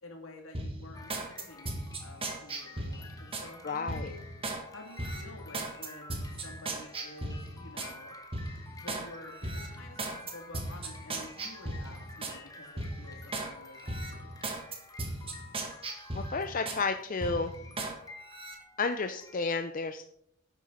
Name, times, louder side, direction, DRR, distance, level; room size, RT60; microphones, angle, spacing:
voice 1, 0.0-4.2 4.7-8.1 8.8-14.3, left 2 dB, 75° left, 1 dB, 2.8 m, -50 dB
sound 1, 0.5-3.5 3.9-4.6 5.0-7.9 8.3-9.1 9.4-12.4 12.8-13.5 13.9-16.8 17.2-17.9 18.3-18.6, right 2 dB, 25° right, 1.7 m, -37 dB
sound 2, 0.9-19.4, left 2 dB, 15° left, 1.1 m, -51 dB
voice 2, 3.6-4.1 16.1-17.5 18.8-20.0, left 4 dB, 40° left, 8 dB, 0.5 m, -31 dB
11.0 x 9.0 x 4.3 m, 0.70 s
head